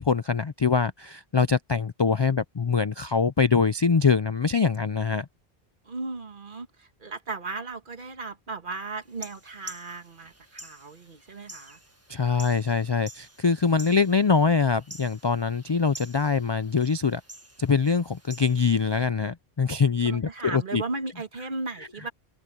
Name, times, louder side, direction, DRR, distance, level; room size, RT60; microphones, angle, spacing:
voice 1, 0.0-5.3 12.1-17.2 17.6-20.8, left 5 dB, 45° left, 0.3 m, -23 dB
voice 2, 5.8-11.8 20.0-22.1, right 3 dB, 50° right, 1.7 m, -36 dB
sound 1, 9.0-19.1, right 1 dB, 15° right, 1.7 m, -48 dB
omnidirectional pair, 1.1 m